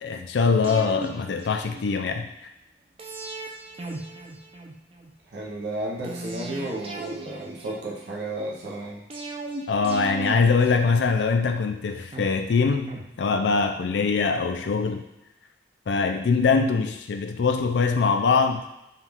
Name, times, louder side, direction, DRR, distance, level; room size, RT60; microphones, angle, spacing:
voice 1, 0.0-2.3 9.7-15.0 15.9-18.6, left 4 dB, 85° left, 6 dB, 0.4 m, -23 dB
sound 1, 0.6-2.2 3.0-5.1 6.0-8.3 9.1-11.5 12.1-13.8 14.1-14.2, right 2 dB, 30° right, 0.6 m, -38 dB
voice 2, 5.3-9.0, right 1 dB, 75° right, -3 dB, 0.8 m, -33 dB
5.4 x 2.4 x 3.5 m, 0.90 s
head